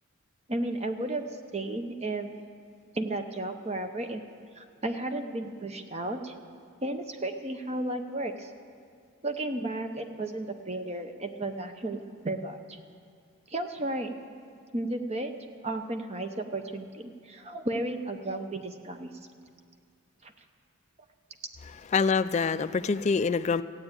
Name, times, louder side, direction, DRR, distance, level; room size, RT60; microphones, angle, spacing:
voice 1, 0.5-2.3 2.9-4.2 4.5-6.3 6.8-8.5 9.2-12.8 13.5-14.1 14.7-15.3 15.6-19.1 20.2-20.3, right 2 dB, 30° right, 6 dB, 0.8 m, -33 dB
voice 2, 21.9-23.6, left 5 dB, 30° left, 12 dB, 0.3 m, -25 dB
14.5 x 8.9 x 8.9 m, 2.2 s
head